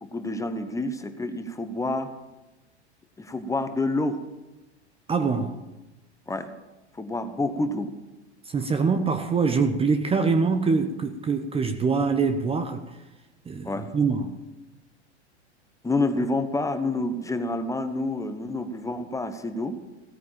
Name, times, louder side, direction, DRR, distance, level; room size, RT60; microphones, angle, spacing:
voice 1, 0.0-2.1 3.2-4.2 6.3-6.5 7.0-7.9 13.6-13.9 15.8-19.8, left 2 dB, 10° left, 1.2 m, -28 dB
voice 2, 5.1-5.6 8.5-12.8 13.5-14.4, right 4 dB, 15° right, 1.0 m, -24 dB
16.5 x 9.3 x 7.5 m
hypercardioid pair, 100°, 34 cm